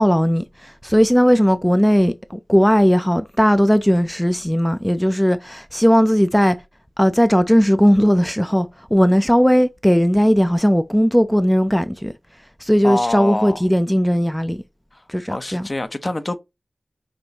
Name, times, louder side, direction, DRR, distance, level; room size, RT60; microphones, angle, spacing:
voice 1, 0.0-6.6 7.0-12.1 12.6-14.6 15.1-15.6, equal, 5° left, 0.5 m, -17 dB
voice 2, 12.8-13.6 14.9-15.0 15.3-16.4, left 2 dB, 45° left, 0.7 m, -25 dB
6.1 x 2.7 x 2.8 m
cardioid pair, 40°, 0 cm